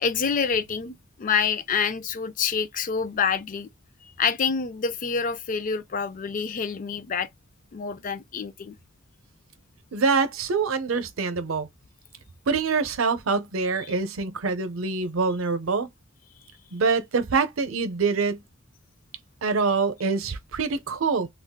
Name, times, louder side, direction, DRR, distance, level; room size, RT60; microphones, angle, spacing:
voice 1, 0.0-3.7 4.0-7.3 7.7-8.8, left 6 dB, 40° left, 0.4 m, -27 dB
voice 2, 9.9-11.7 12.5-15.9 16.7-18.4 19.4-21.3, right 4 dB, 80° right, 0.6 m, -25 dB
3.6 x 2.3 x 2.2 m
head